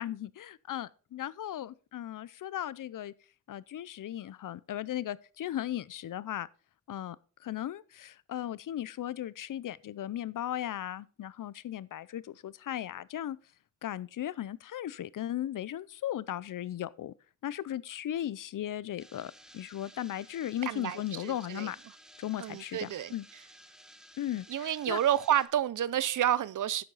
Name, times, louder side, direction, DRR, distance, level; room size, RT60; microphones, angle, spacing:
voice 1, 0.0-3.1 3.5-6.5 6.9-7.2 7.4-13.4 13.8-17.1 17.4-21.8 22.2-23.2 24.2-25.0, left 12 dB, 90° left, 0.5 m, -37 dB
sound 1, 19.0-25.5, equal, ahead, 0.8 m, -55 dB
voice 2, 20.7-21.7 22.4-23.1 24.5-26.8, right 11 dB, 80° right, 0.5 m, -30 dB
10.0 x 7.8 x 3.9 m
wide cardioid pair, 160°, 31 cm